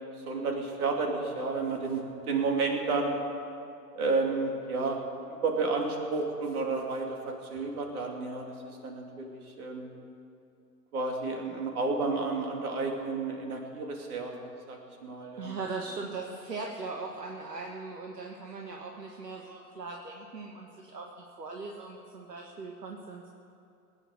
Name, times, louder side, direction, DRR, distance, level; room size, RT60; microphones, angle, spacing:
voice 1, 0.2-3.2 3.9-5.0 5.3-9.9 10.9-14.4 14.7-15.5, right 3 dB, 65° right, 1 dB, 3.0 m, -31 dB
voice 2, 15.4-21.1 21.4-23.3, right 3 dB, 85° right, 1 dB, 1.5 m, -39 dB
20.0 x 9.1 x 6.8 m, 2.5 s
figure-of-eight pair, 105°, 48 cm